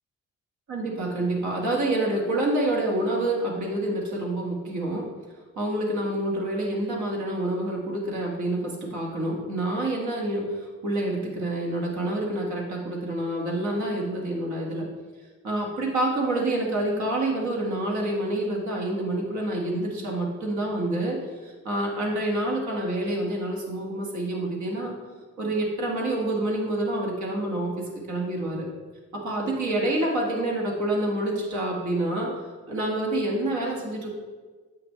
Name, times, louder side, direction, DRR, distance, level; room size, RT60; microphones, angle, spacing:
voice 1, 0.7-5.1 5.6-14.9 15.4-21.2 21.4-25.0 25.4-28.7 29.1-32.3 32.7-34.1, right 1 dB, 70° right, -2 dB, 1.9 m, -27 dB
7.8 x 5.8 x 3.2 m, 1.4 s
cardioid pair, 90°, 30 cm